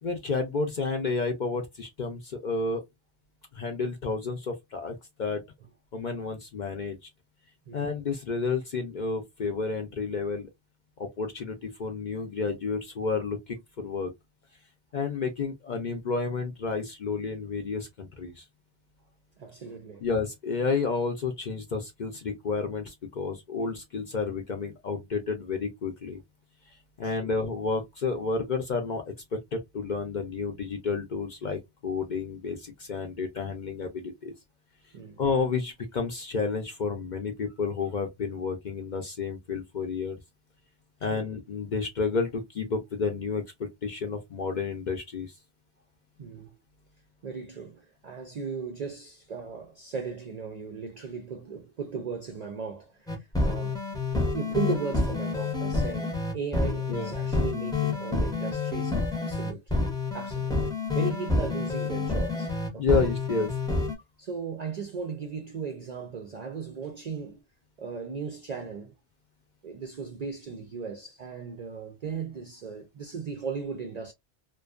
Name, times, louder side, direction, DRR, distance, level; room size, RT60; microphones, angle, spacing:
voice 1, 0.0-2.8 3.5-5.4 5.9-7.0 7.7-10.5 11.0-14.1 14.9-18.4 20.0-26.2 27.0-29.0 29.3-34.3 35.2-40.2 41.0-45.3 56.9-57.1 62.8-63.5, left 4 dB, 55° left, 0.5 m, -31 dB
voice 2, 19.4-20.1 27.0-27.2 31.4-31.6 34.9-35.2 41.1-41.2 46.2-46.5 47.2-54.0 54.3-59.7 60.1-60.5 60.9-63.0 64.2-67.4 67.8-68.9 69.6-74.1, right 5 dB, 60° right, 0.4 m, -36 dB
sound 1, 53.1-63.9, left 3 dB, 5° left, 0.5 m, -28 dB
2.5 x 2.3 x 2.3 m
omnidirectional pair, 1.2 m